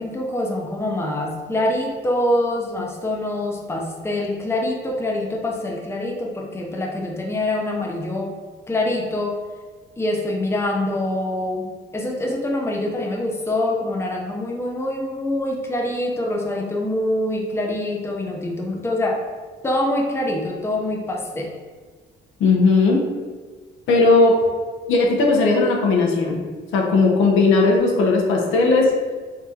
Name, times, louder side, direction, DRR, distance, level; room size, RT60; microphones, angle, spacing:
voice 1, 0.0-8.3 8.7-9.3 10.0-11.7 11.9-19.2 19.6-21.5, left 1 dB, 15° left, -1 dB, 0.7 m, -25 dB
voice 2, 22.4-23.0 23.9-24.3 24.9-26.4 26.7-28.9, left 3 dB, 80° left, -1 dB, 0.8 m, -17 dB
3.8 x 3.5 x 2.9 m, 1.5 s
cardioid pair, 90°, 20 cm